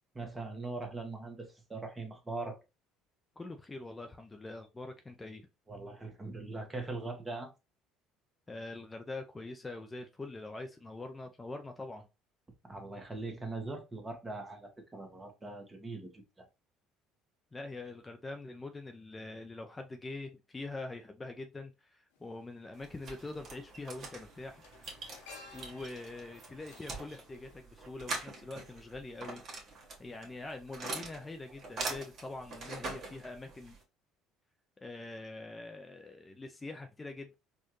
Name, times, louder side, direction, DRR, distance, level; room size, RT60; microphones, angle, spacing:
voice 1, 0.1-2.6 5.7-7.5 12.6-16.4, right 3 dB, 20° right, 1.4 m, -41 dB
voice 2, 3.4-5.5 8.5-12.1 17.5-24.9 25.5-29.4 30.0-33.8 34.8-37.4, left 2 dB, 20° left, 0.7 m, -44 dB
sound 1, 22.1-22.2 23.5-23.7 24.0-28.3 28.6-28.7, left 4 dB, 85° left, 1.0 m, -55 dB
sound 2, 22.7-33.8, right 3 dB, 50° right, 1.7 m, -44 dB
4.2 x 2.5 x 3.0 m
hypercardioid pair, 70°, 0 cm